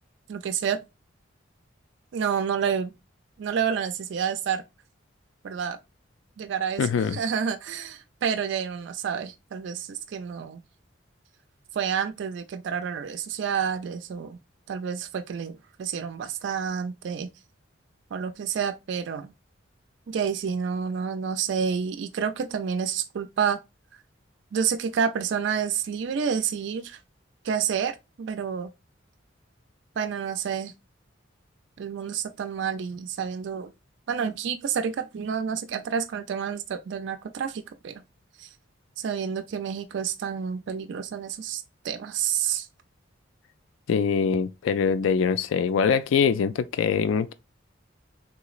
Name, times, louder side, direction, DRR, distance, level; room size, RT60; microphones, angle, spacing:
voice 1, 0.3-0.8 2.1-2.9 3.4-4.6 5.4-5.8 6.4-10.6 11.7-14.4 14.7-17.3 18.1-19.3 20.1-23.6 24.5-27.0 27.4-28.7 30.0-30.7 31.8-33.7 34.1-38.0 38.4-38.5 39.0-42.7, right 7 dB, 65° right, 0.3 m, -29 dB
voice 2, 6.8-7.2 43.9-47.3, left 6 dB, 80° left, 0.3 m, -23 dB
3.7 x 2.9 x 2.4 m
head